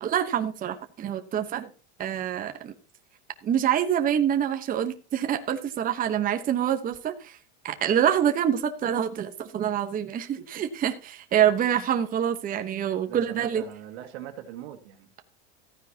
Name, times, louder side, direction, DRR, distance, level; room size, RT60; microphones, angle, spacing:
voice 1, 0.0-1.7 2.0-2.7 3.4-7.4 7.6-13.6, right 9 dB, 25° right, 1.1 m, -26 dB
voice 2, 13.1-15.1, right 11 dB, 80° right, 2.2 m, -40 dB
15.0 x 9.7 x 2.9 m
supercardioid pair, 140°, 33 cm